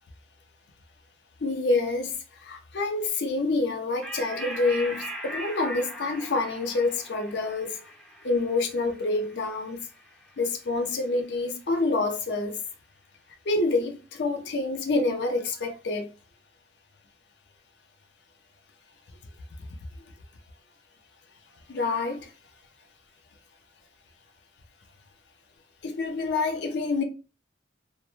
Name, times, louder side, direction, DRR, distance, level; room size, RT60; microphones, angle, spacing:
voice 1, 1.4-2.1 2.4-7.8 8.2-9.8 10.4-12.6 13.5-16.1 21.7-22.3 25.8-27.0, left 3 dB, 65° left, 0.5 m, -27 dB
sound 1, 4.0-10.9, right 1 dB, ahead, 0.4 m, -40 dB
2.1 x 2.1 x 2.9 m
head